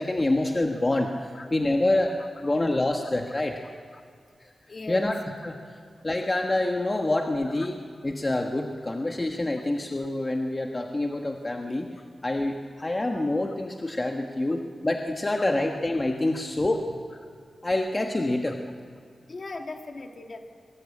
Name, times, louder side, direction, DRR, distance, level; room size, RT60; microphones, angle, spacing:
voice 1, 0.0-2.1 2.4-3.6 4.9-5.2 5.4-5.6 6.0-7.8 8.0-11.9 12.2-17.0 17.6-18.6, left 2 dB, 25° left, 2 dB, 1.4 m, -26 dB
voice 2, 4.7-5.1 10.0-10.1 13.5-13.6 19.3-20.5, left 3 dB, 45° left, 3 dB, 2.3 m, -39 dB
22.5 x 21.5 x 8.5 m, 2.1 s
wide cardioid pair, 120°, 0 cm